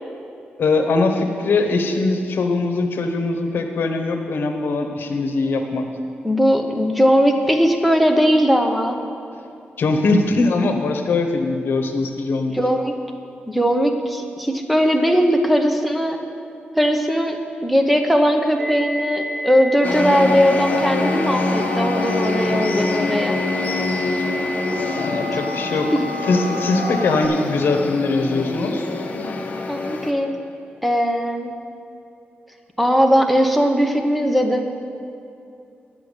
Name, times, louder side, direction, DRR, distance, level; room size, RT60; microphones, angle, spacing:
voice 1, 0.6-5.9 9.8-12.6 25.0-25.9 26.3-28.9, left 3 dB, 70° left, 5 dB, 1.0 m, -21 dB
voice 2, 6.2-8.9 12.5-12.9 13.5-16.2 16.8-17.4 17.6-23.4 29.7-30.3 30.8-31.5 32.8-34.7, equal, ahead, 4 dB, 0.8 m, -19 dB
sound 1, 18.6-27.3, left 1 dB, 45° right, 0.9 m, -30 dB
sound 2, 19.8-30.1, left 3 dB, 45° left, 0.9 m, -25 dB
10.0 x 5.8 x 8.1 m, 2.6 s
wide cardioid pair, 150°, 4 cm